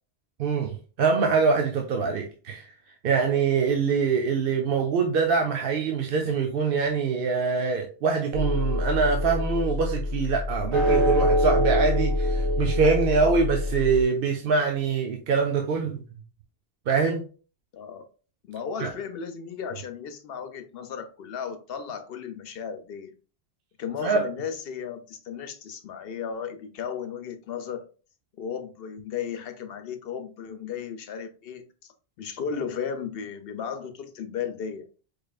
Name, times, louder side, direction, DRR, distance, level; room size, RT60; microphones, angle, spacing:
voice 1, 0.4-2.6 3.0-16.0 16.9-17.2 18.8-18.9 24.0-24.2, right 5 dB, 65° right, 0.8 m, -24 dB
sound 1, 8.3-14.0, left 1 dB, 30° right, 1.0 m, -25 dB
voice 2, 17.7-18.0 18.4-23.1 23.8-27.8 28.4-34.9, left 7 dB, 65° left, 0.8 m, -35 dB
4.7 x 3.2 x 2.3 m
omnidirectional pair, 1.1 m